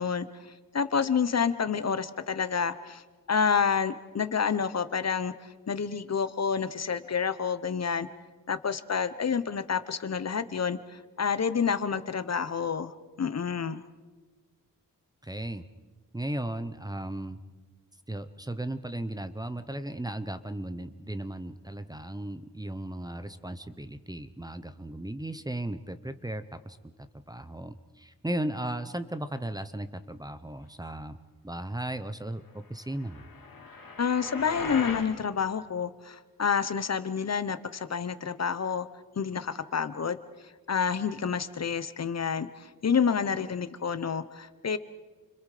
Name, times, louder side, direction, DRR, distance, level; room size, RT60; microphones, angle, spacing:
voice 1, 0.0-3.0 3.3-8.1 8.5-13.8 34.0-38.9 39.2-40.2 40.4-44.8, left 6 dB, 50° left, 12 dB, 1.0 m, -29 dB
voice 2, 15.2-15.7 16.1-17.4 18.1-31.2 31.4-33.3, right 1 dB, 10° right, 10 dB, 0.9 m, -36 dB
sound 1, 32.9-35.1, left 4 dB, 75° left, 3.1 m, -38 dB
30.0 x 25.5 x 5.0 m, 1.3 s
wide cardioid pair, 140°, 34 cm